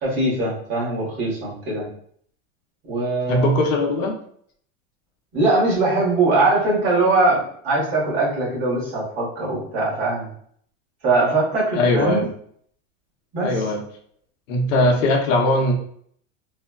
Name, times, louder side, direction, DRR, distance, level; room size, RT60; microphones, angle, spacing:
voice 1, 0.0-1.9 2.8-3.5 5.3-10.3 11.0-12.3 13.3-13.6, right 2 dB, 30° right, -5 dB, 1.3 m, -21 dB
voice 2, 3.3-4.1 11.7-12.2 13.4-13.8 14.5-15.7, left 1 dB, 75° left, 2 dB, 0.8 m, -19 dB
3.2 x 2.2 x 2.3 m, 0.62 s
supercardioid pair, 150°, 39 cm